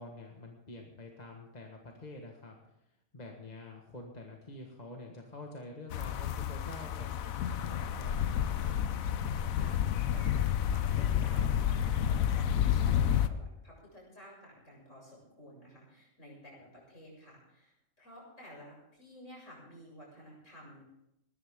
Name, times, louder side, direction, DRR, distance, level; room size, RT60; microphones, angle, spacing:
voice 1, 0.0-2.5 3.1-8.8, left 2 dB, 30° left, 1 dB, 1.6 m, -47 dB
sound 1, 5.9-13.3, left 9 dB, 70° left, 1.2 m, -30 dB
voice 2, 10.1-20.8, equal, 55° left, -3 dB, 7.5 m, -53 dB
20.5 x 13.0 x 3.7 m, 0.84 s
omnidirectional pair, 1.5 m